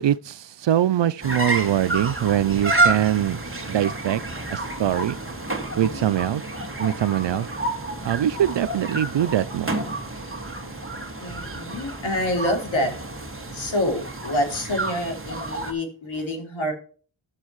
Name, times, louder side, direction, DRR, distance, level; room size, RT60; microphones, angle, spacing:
voice 1, 0.0-3.4 3.7-4.2 4.5-5.2 5.8-6.4 6.8-7.5 8.0-9.7, right 11 dB, 60° right, 0.5 m, -23 dB
sound 1, 1.2-15.7, right 2 dB, 25° right, 2.0 m, -29 dB
voice 2, 5.8-6.1 11.2-12.9 13.5-16.7, left 1 dB, 65° left, 3.1 m, -27 dB
11.5 x 7.1 x 3.1 m
cardioid pair, 60°, 50 cm